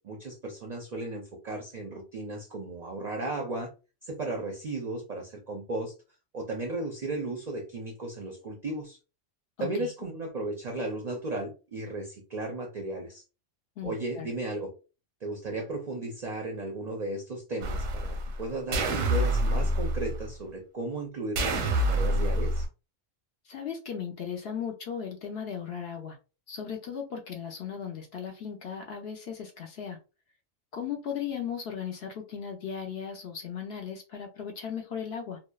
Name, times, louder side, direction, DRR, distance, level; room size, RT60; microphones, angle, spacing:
voice 1, 0.0-3.7 4.0-5.9 6.3-9.0 9.6-13.2 13.8-14.7 15.2-22.7, right 2 dB, 55° right, 0.5 m, -35 dB
voice 2, 9.6-9.9 13.8-14.3 23.4-26.2 26.5-30.0 30.7-35.4, left 7 dB, 65° left, 0.7 m, -37 dB
sound 1, 17.6-18.4 18.7-20.3 21.4-22.7, right 1 dB, 90° right, 1.0 m, -27 dB
2.7 x 2.1 x 2.2 m
omnidirectional pair, 1.3 m